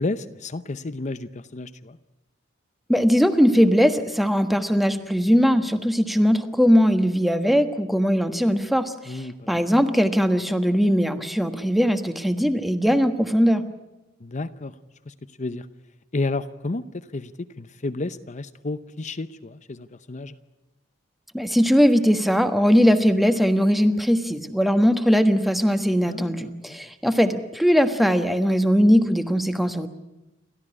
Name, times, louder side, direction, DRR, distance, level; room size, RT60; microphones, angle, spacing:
voice 1, 0.0-2.0 9.0-9.6 14.2-14.7 15.1-15.7 16.1-20.4 26.1-26.9, left 2 dB, 35° left, 12 dB, 0.7 m, -32 dB
voice 2, 2.9-9.2 9.5-13.6 21.3-29.9, equal, ahead, 9 dB, 1.3 m, -20 dB
29.5 x 13.0 x 10.0 m, 0.97 s
head